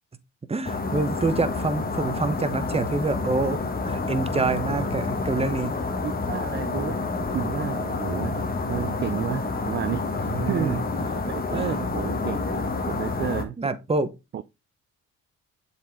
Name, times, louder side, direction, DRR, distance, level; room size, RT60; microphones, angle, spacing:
voice 1, 0.5-5.7 10.3-10.8 11.5-11.7 13.6-14.1, right 3 dB, 20° right, 0.9 m, -27 dB
sound 1, 0.6-13.4, left 3 dB, 30° left, 1.4 m, -28 dB
voice 2, 4.4-4.8 6.0-10.8 11.1-13.6 14.3-14.4, right 9 dB, 35° right, 0.4 m, -32 dB
7.4 x 4.3 x 3.5 m
cardioid pair, 90°, 30 cm